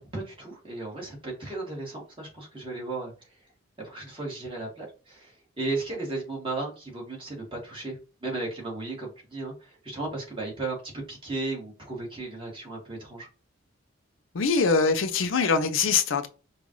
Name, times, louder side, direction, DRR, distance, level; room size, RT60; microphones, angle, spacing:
voice 1, 0.1-3.1 3.8-13.3, right 2 dB, 25° right, 1.9 m, -35 dB
voice 2, 14.3-16.3, left 4 dB, 70° left, 0.6 m, -23 dB
5.3 x 2.5 x 3.1 m
head